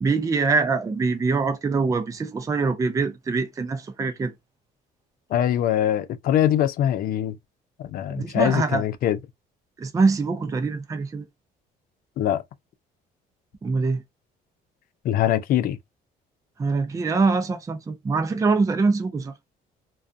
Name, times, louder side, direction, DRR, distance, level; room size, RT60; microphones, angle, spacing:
voice 1, 0.0-4.3 8.1-8.8 9.8-11.3 13.6-14.0 16.6-19.3, right 4 dB, 20° right, 0.5 m, -24 dB
voice 2, 5.3-7.4 7.8-9.2 12.2-12.4 15.0-15.8, left 11 dB, 60° left, 0.4 m, -23 dB
2.4 x 2.3 x 2.5 m
cardioid pair, 110°, 17 cm